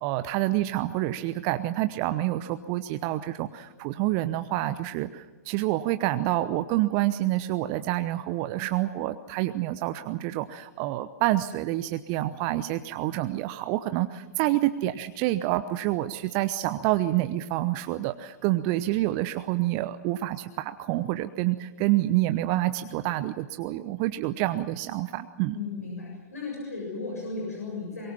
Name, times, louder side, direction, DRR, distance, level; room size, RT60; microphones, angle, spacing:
voice 1, 0.0-25.5, right 15 dB, 35° right, 11 dB, 0.9 m, -28 dB
voice 2, 25.5-28.1, left 3 dB, 70° left, -1 dB, 7.1 m, -35 dB
24.0 x 22.5 x 7.3 m, 1.3 s
figure-of-eight pair, 105°, 9 cm